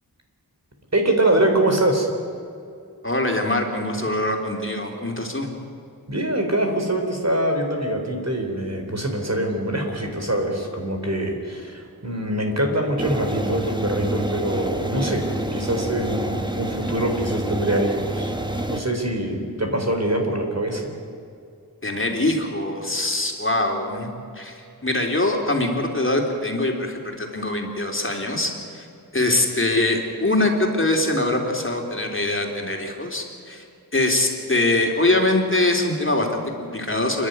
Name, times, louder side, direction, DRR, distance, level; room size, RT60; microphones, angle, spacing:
voice 1, 0.9-2.1 6.1-15.2 15.5-18.3 18.7-21.0, right 1 dB, 45° right, 3 dB, 4.0 m, -24 dB
voice 2, 3.0-5.5 21.8-24.1 24.4-28.9 29.1-33.7 33.9-37.3, left 2 dB, 35° left, 2 dB, 3.5 m, -23 dB
sound 1, 13.0-18.8, right 1 dB, 10° right, 1.8 m, -28 dB
29.0 x 11.0 x 9.5 m, 2.4 s
wide cardioid pair, 55°, 38 cm